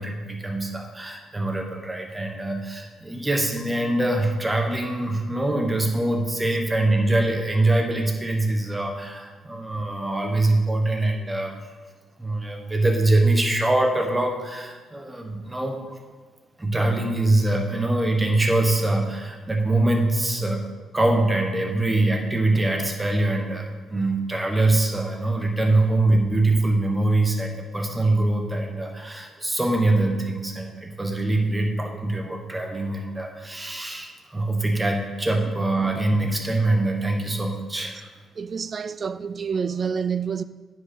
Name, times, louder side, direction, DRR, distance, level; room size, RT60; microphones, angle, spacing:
voice 1, 0.0-11.6 12.2-16.0 16.6-20.6 20.9-38.1, right 2 dB, 15° right, 1.4 m, -23 dB
voice 2, 38.4-40.4, right 6 dB, 40° right, 0.3 m, -28 dB
9.5 x 5.3 x 6.3 m
cardioid pair, 95°, 0 cm